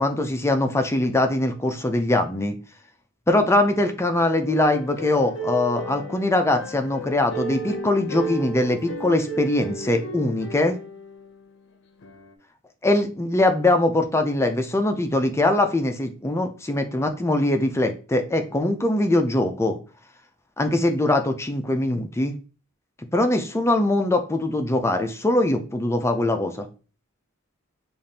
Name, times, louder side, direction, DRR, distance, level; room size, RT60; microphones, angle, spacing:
voice 1, 0.0-2.6 3.3-10.8 12.8-19.8 20.6-22.3 23.1-26.7, left 1 dB, 10° left, 6 dB, 0.4 m, -22 dB
sound 1, 4.5-11.4 12.0-12.3, right 2 dB, 55° left, 0.6 m, -34 dB
4.9 x 2.5 x 2.7 m, 0.35 s
head